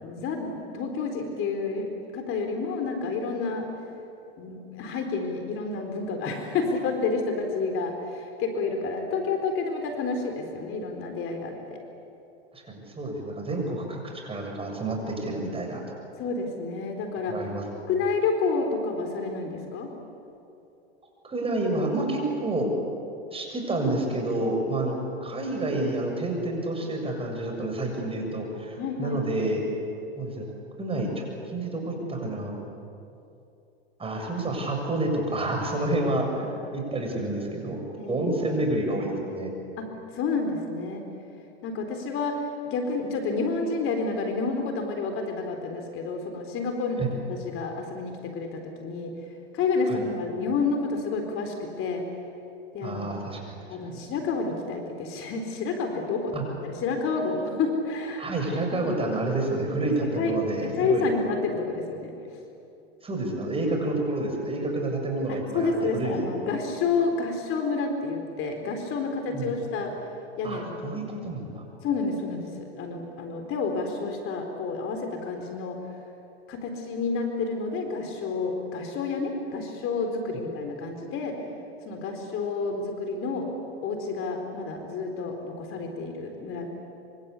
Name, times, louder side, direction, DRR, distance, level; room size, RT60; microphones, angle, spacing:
voice 1, 0.0-3.7 4.4-11.8 16.2-17.4 17.9-19.9 28.8-29.2 38.0-38.3 39.8-39.9 40.1-41.0 41.6-49.1 49.5-52.0 52.7-53.0 53.7-58.3 58.7-58.9 60.2-60.4 60.8-62.1 65.3-69.9 70.4-70.6 71.8-75.8 76.5-81.4 81.8-83.5 83.8-86.7, left 4 dB, 40° left, 4 dB, 4.2 m, -29 dB
voice 2, 12.5-15.8 17.3-17.6 21.2-22.7 23.3-29.6 30.2-30.5 30.8-32.6 34.0-37.8 38.1-39.5 47.0-47.1 49.9-50.0 52.8-53.6 53.8-54.0 56.3-56.4 58.2-61.1 63.0-66.3 69.3-69.6 70.4-71.6, right 2 dB, 15° right, 2 dB, 7.3 m, -29 dB
26.5 x 25.5 x 8.4 m, 2.7 s
hypercardioid pair, 110°, 32 cm